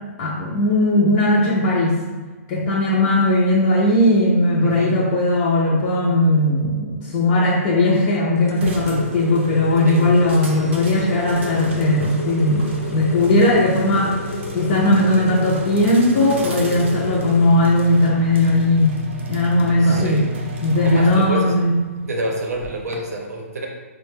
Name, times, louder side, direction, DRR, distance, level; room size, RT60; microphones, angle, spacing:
voice 1, 0.2-2.0 2.5-14.1 14.5-19.0 19.3-20.3 20.6-21.7, left 1 dB, 20° left, -5 dB, 0.3 m, -18 dB
voice 2, 4.6-5.0 9.8-10.1 19.8-20.3 20.8-21.6 22.0-23.7, right 1 dB, 85° right, 1 dB, 0.8 m, -27 dB
sound 1, 8.3-17.5, left 3 dB, 85° left, 0.5 m, -32 dB
sound 2, 8.6-23.0, equal, 50° right, 0.6 m, -33 dB
4.7 x 2.1 x 3.2 m, 1.3 s
hypercardioid pair, 170°, 8 cm